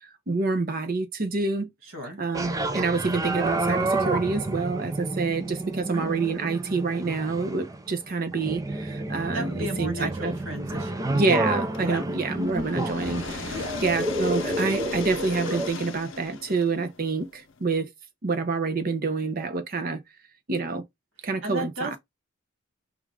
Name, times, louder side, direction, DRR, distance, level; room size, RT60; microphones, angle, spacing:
voice 1, 0.3-1.7 2.2-10.4 11.1-13.5 13.8-17.9 18.2-20.0 20.5-20.8 21.2-22.0, right 4 dB, 45° right, 0.8 m, -27 dB
voice 2, 1.8-2.2 5.8-6.1 9.3-11.2 11.8-12.1 13.5-13.8 21.4-22.0, equal, 75° right, 2.0 m, -35 dB
sound 1, 2.3-15.7, right 2 dB, 15° right, 0.4 m, -30 dB
sound 2, 11.7-17.6, left 5 dB, 65° left, 0.7 m, -38 dB
4.9 x 2.4 x 3.3 m
head